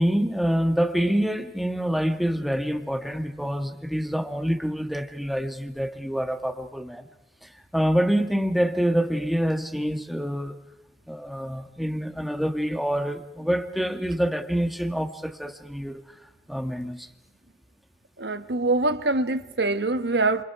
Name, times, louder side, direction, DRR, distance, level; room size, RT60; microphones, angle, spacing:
voice 1, 0.0-7.1 7.4-10.6 11.1-16.0 16.5-17.1, equal, ahead, 1.6 m, -26 dB
voice 2, 18.2-20.4, right 2 dB, 75° right, 1.4 m, -24 dB
29.5 x 28.0 x 4.8 m
head